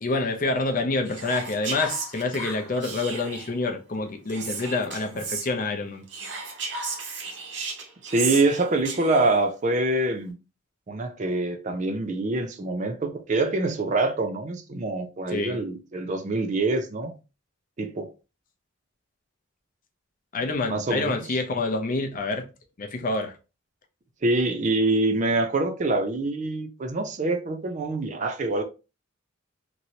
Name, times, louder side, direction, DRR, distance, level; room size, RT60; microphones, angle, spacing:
voice 1, 0.0-6.0 15.3-15.6 20.3-22.5 22.8-23.3, left 3 dB, 40° left, 0.5 m, -27 dB
Whispering, 1.1-3.6 4.3-5.5 6.1-9.4, right 4 dB, 60° right, 0.9 m, -34 dB
voice 2, 8.0-10.3 10.9-17.1 17.8-18.1 20.7-21.2 24.2-28.6, right 2 dB, 35° right, 0.4 m, -25 dB
3.0 x 2.7 x 2.7 m
head